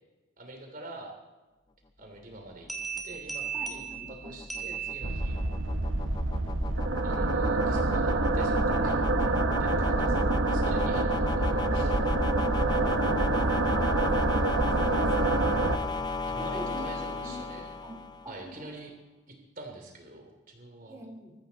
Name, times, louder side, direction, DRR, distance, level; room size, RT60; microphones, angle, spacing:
voice 1, 0.4-1.1 2.0-2.7 3.0-5.4 7.0-9.0 9.6-10.2 10.5-11.9 16.2-17.7 18.3-18.9 19.3-21.0, right 2 dB, 45° right, 3 dB, 2.9 m, -45 dB
sound 1, 2.3-18.5, left 3 dB, 20° left, 0.5 m, -36 dB
sound 2, 2.7-5.6, right 7 dB, ahead, 2.3 m, -37 dB
voice 2, 3.5-4.4 5.4-5.5 8.8-9.3 10.2-10.9 12.4-15.5 16.5-18.0 18.2-18.7 20.8-21.3, equal, 15° right, -1 dB, 3.6 m, -44 dB
sound 3, 5.0-15.8, right 2 dB, 75° right, 1.3 m, -26 dB
22.0 x 15.0 x 4.1 m, 1.2 s
head